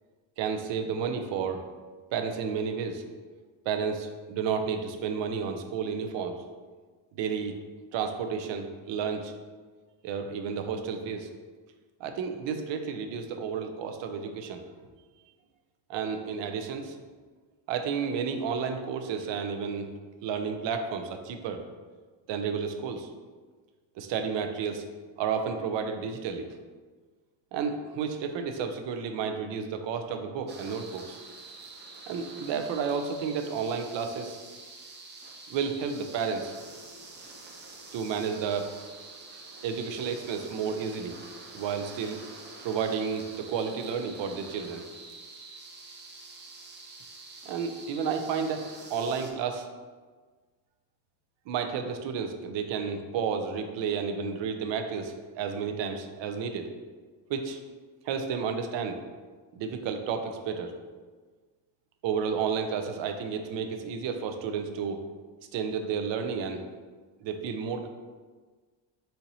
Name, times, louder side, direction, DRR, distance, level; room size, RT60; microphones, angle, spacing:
voice 1, 0.4-1.7 2.1-3.0 3.7-6.4 7.1-7.6 7.9-9.3 10.0-11.3 12.0-14.7 15.9-17.0 17.7-19.9 20.2-21.6 22.3-23.1 24.0-24.8 25.2-26.5 27.5-31.2 32.1-34.4 35.5-36.5 37.9-38.7 39.6-41.2 41.5-42.2 42.6-44.9 47.5-49.7 51.5-56.7 57.3-57.6 58.0-59.0 59.5-60.8 62.0-65.0 65.5-66.7 67.2-67.9, right 6 dB, 80° right, 6 dB, 0.6 m, -31 dB
sound 1, 30.5-49.3, right 3 dB, 25° right, 0.4 m, -47 dB
4.4 x 2.8 x 4.0 m, 1.4 s
cardioid pair, 170°, 44 cm